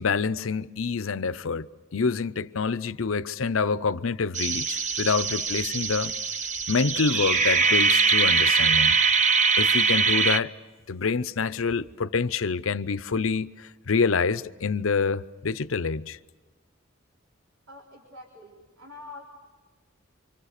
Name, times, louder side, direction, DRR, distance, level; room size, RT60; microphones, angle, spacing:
voice 1, 0.0-1.7 1.9-6.1 6.7-8.9 9.6-10.5 10.9-16.2, left 5 dB, 80° left, 0.7 m, -27 dB
sound 1, 4.3-10.4, right 5 dB, 35° right, 0.8 m, -22 dB
voice 2, 17.7-19.3, left 2 dB, 85° right, 3.9 m, -45 dB
29.0 x 25.0 x 6.6 m
head